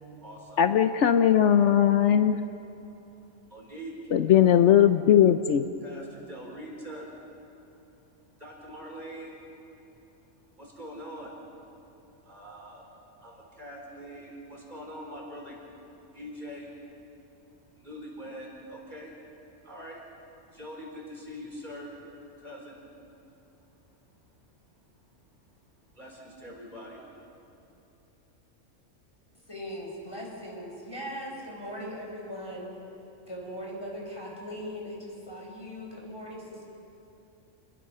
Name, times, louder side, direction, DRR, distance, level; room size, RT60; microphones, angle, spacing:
voice 1, 0.0-0.6 3.5-4.1 5.8-7.6 8.0-9.5 10.5-11.5 12.2-12.9 13.2-15.5 16.1-16.8 17.6-19.1 19.6-20.1 20.5-21.9 22.4-23.9 24.1-24.2 25.7-27.2 27.5-27.6, equal, 35° right, -2 dB, 4.7 m, -44 dB
voice 2, 0.6-2.4 4.1-5.7, left 10 dB, 75° left, 9 dB, 1.0 m, -19 dB
voice 3, 29.5-32.8 33.3-36.6, equal, 20° left, -2 dB, 5.0 m, -39 dB
29.0 x 21.0 x 5.6 m, 2.9 s
omnidirectional pair, 1.3 m